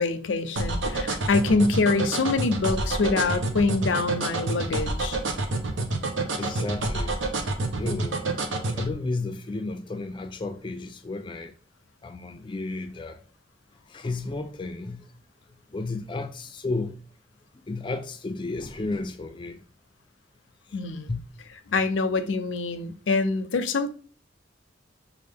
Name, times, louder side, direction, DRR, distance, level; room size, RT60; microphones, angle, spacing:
voice 1, 0.0-5.2 20.7-21.1 21.7-23.9, left 3 dB, 90° left, 0.5 m, -25 dB
sound 1, 0.6-8.9, right 2 dB, 90° right, 0.8 m, -27 dB
voice 2, 6.4-7.2 7.8-8.2 8.8-11.5 12.0-13.2 13.9-15.1 15.7-17.0 17.7-19.6 20.7-20.8 21.1-21.3, left 3 dB, 25° left, 0.3 m, -32 dB
6.3 x 2.5 x 3.4 m
head